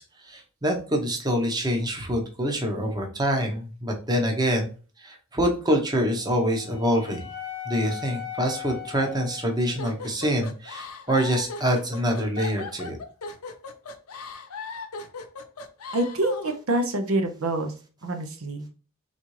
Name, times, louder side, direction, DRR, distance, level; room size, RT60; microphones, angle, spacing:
voice 1, 0.0-4.7 5.0-7.2 7.7-13.0, equal, 20° right, 2 dB, 0.9 m, -26 dB
Wind instrument woodwind instrument, 5.9-10.1, left 10 dB, 50° left, 0.9 m, -39 dB
sound 1, 9.8-16.6, left 4 dB, 90° left, 0.7 m, -38 dB
voice 2, 15.9-17.7 18.0-18.7, right 1 dB, 70° right, 6 dB, 0.7 m, -26 dB
4.1 x 3.6 x 3.1 m, 0.37 s
head